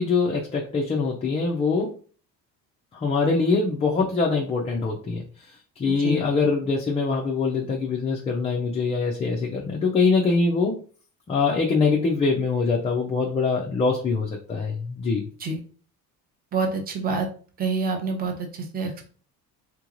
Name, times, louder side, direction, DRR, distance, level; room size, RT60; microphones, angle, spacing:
voice 1, 0.0-1.9 2.9-5.2 5.8-10.8 11.3-15.3, left 4 dB, 20° left, -2 dB, 0.3 m, -23 dB
voice 2, 16.5-17.3 17.6-19.0, right 3 dB, 25° right, 3 dB, 0.7 m, -27 dB
3.8 x 2.9 x 2.4 m, 0.40 s
cardioid pair, 155°, 37 cm